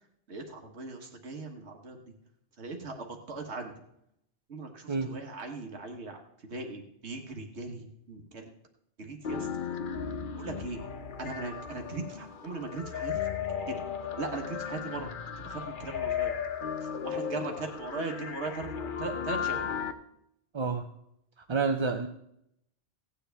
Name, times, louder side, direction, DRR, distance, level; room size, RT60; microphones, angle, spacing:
voice 1, 0.3-2.0 2.6-3.7 4.5-6.2 6.5-8.5 9.0-9.5 10.4-10.8 11.2-13.3 13.7-13.8 14.2-15.1 15.4-16.3 16.8-19.7, right 3 dB, 80° right, 2 dB, 1.6 m, -39 dB
voice 2, 4.9-5.2 20.5-20.9 21.4-22.1, right 4 dB, 35° right, 5 dB, 0.5 m, -29 dB
sound 1, 9.2-19.9, left 7 dB, 50° left, 0.9 m, -35 dB
16.5 x 9.8 x 3.4 m, 0.77 s
omnidirectional pair, 1.1 m